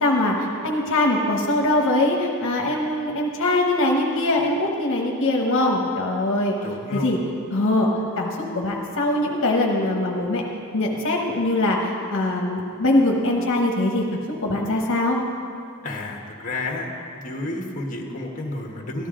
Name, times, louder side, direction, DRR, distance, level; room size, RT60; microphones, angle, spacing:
voice 1, 0.0-6.5 6.9-7.2 7.5-7.9 8.2-10.4 10.7-15.2, left 1 dB, 65° left, 0 dB, 1.1 m, -22 dB
voice 2, 6.6-7.1 15.8-16.9 17.1-19.1, left 2 dB, 40° left, 1 dB, 1.3 m, -31 dB
14.0 x 12.0 x 3.8 m, 2.4 s
head